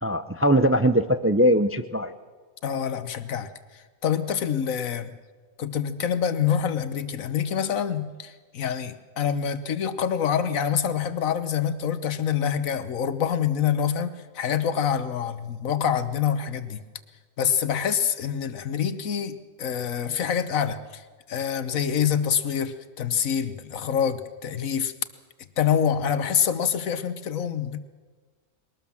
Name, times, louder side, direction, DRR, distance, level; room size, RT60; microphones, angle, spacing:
voice 1, 0.0-2.1, equal, 20° right, 10 dB, 0.3 m, -21 dB
voice 2, 2.6-5.1 5.6-16.8 17.4-21.0 21.3-24.9 25.6-27.8, left 8 dB, 85° left, 12 dB, 1.5 m, -26 dB
21.5 x 18.5 x 7.2 m, 1.4 s
omnidirectional pair, 1.4 m